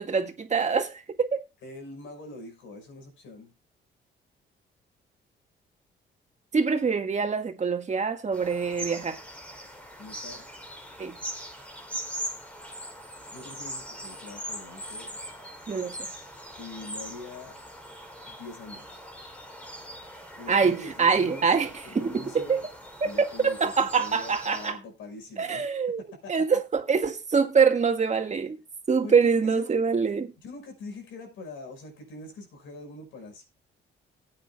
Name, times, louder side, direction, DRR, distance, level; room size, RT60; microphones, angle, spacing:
voice 1, 0.0-1.4 6.5-9.2 11.0-11.2 15.7-16.1 20.5-21.7 22.0-22.6 23.0-23.1 23.4-24.7 25.4-28.6 28.9-30.3, right 5 dB, 35° right, 1.9 m, -25 dB
voice 2, 1.6-3.5 10.0-10.5 13.3-15.2 16.6-17.6 18.3-19.0 20.4-21.6 21.8-22.7 23.0-25.6 26.0-26.6 29.0-29.2 29.4-29.6 30.4-33.4, left 3 dB, 80° left, 5.8 m, -43 dB
sound 1, 8.3-24.7, equal, 5° left, 3.0 m, -41 dB
18.0 x 8.8 x 2.4 m
cardioid pair, 90°, 20 cm